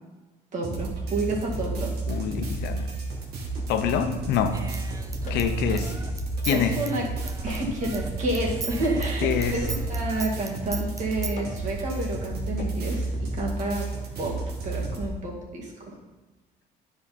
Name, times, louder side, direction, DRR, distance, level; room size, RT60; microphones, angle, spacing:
voice 1, 0.5-1.9 5.3-5.4 5.7-5.8 6.5-7.0 7.4-13.9 14.2-14.4 14.6-16.0, right 2 dB, 45° right, -1 dB, 2.1 m, -30 dB
sound 1, 0.6-15.1, right 2 dB, 70° right, 1.9 m, -32 dB
voice 2, 2.1-2.9 3.7-4.6 5.3-5.9 6.4-6.8 9.2-9.6, left 8 dB, 80° left, 7 dB, 0.9 m, -25 dB
Human voice / Scissors, 4.3-8.1 8.3-11.4, right 4 dB, 20° right, 0.5 m, -38 dB
sound 2, 5.3-5.6 6.5-6.8 7.5-7.8 8.4-8.7 8.9-9.2 9.9-10.5 11.4-11.8 12.6-12.8, left 3 dB, 45° left, 1.7 m, -41 dB
10.0 x 5.1 x 4.2 m, 1.2 s
cardioid pair, 110°, 17 cm